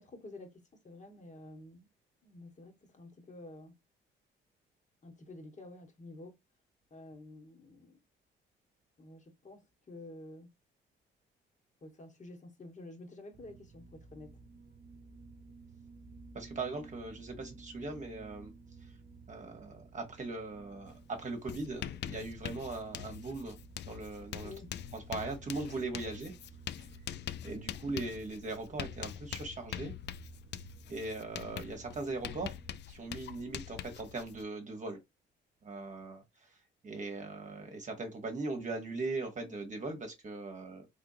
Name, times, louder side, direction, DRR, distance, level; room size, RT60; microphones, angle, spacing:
voice 1, 0.0-1.9 2.2-3.7 5.0-6.4 6.9-8.0 9.0-10.5 11.8-14.3 24.4-24.7, left 2 dB, 40° left, 1.6 m, -50 dB
sound 1, 13.3-32.8, right 5 dB, 55° right, 0.7 m, -54 dB
voice 2, 16.3-18.5 19.3-23.6 23.8-24.5 24.9-26.3 26.8-26.9 27.4-29.9 30.9-32.6 32.9-35.0 35.6-36.6 36.8-40.9, right 3 dB, 40° right, 1.2 m, -39 dB
Writing, 20.9-21.0 21.3-34.4, left 11 dB, 60° left, 0.4 m, -44 dB
3.6 x 3.4 x 2.6 m
cardioid pair, 90°, 20 cm